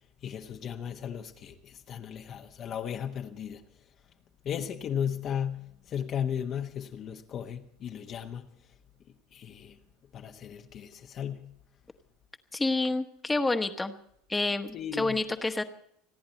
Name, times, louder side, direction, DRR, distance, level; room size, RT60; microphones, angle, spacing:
voice 1, 0.2-3.6 4.4-8.5 9.3-9.8 10.1-11.5 14.7-15.2, left 8 dB, 40° left, 1.3 m, -35 dB
voice 2, 12.5-13.9 14.3-15.6, left 2 dB, 10° left, 1.4 m, -28 dB
30.0 x 10.5 x 4.3 m
hypercardioid pair, 80°, 0 cm